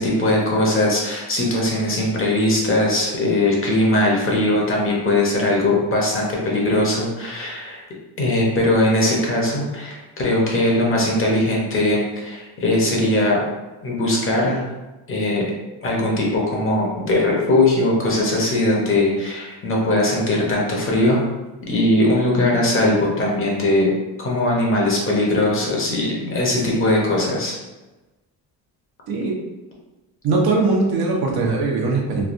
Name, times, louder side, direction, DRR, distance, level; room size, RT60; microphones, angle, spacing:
voice 1, 0.0-7.8 8.2-13.4 13.8-14.7 15.1-15.4 15.8-21.3 21.7-23.9 24.2-27.5, left 1 dB, 30° left, -2 dB, 0.8 m, -20 dB
voice 2, 29.1-29.4 30.2-32.2, right 3 dB, 65° right, -2 dB, 0.9 m, -20 dB
3.2 x 2.3 x 2.5 m, 1.1 s
cardioid pair, 110°, 40 cm